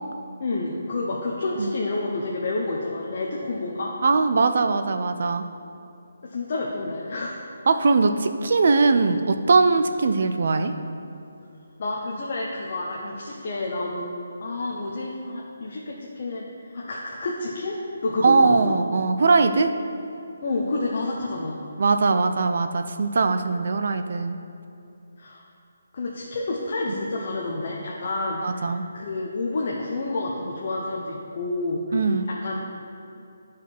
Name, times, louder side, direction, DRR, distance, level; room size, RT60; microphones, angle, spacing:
voice 1, 0.4-3.9 6.2-7.5 11.8-14.1 14.4-16.5 16.7-17.8 18.0-18.8 20.4-21.6 25.2-25.4 25.9-32.0 32.3-32.6, left 2 dB, 35° left, -3 dB, 0.7 m, -29 dB
voice 2, 4.0-5.5 7.7-10.7 18.2-19.7 21.8-24.4 28.4-28.8 31.9-32.3, right 4 dB, 45° right, 8 dB, 0.5 m, -21 dB
11.0 x 4.8 x 4.5 m, 2.7 s
hypercardioid pair, 175°, 0 cm